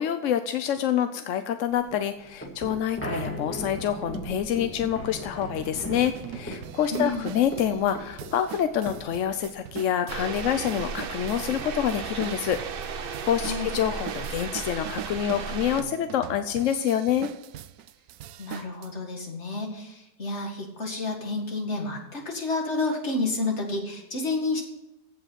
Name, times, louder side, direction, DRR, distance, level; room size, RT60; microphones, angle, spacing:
voice 1, 0.0-12.6 13.0-17.3, left 9 dB, 65° left, 9 dB, 0.8 m, -27 dB
sound 1, 1.8-9.9, equal, 10° left, 1.8 m, -38 dB
sound 2, 4.1-4.2 4.8-4.9 5.4-18.9, right 11 dB, 70° right, 1.0 m, -42 dB
voice 2, 6.9-7.2 13.4-13.7 18.4-24.6, left 2 dB, 40° left, 1 dB, 2.3 m, -30 dB
sound 3, 10.1-15.8, right 6 dB, 55° right, 0.6 m, -35 dB
15.5 x 5.7 x 5.7 m, 0.94 s
omnidirectional pair, 1.8 m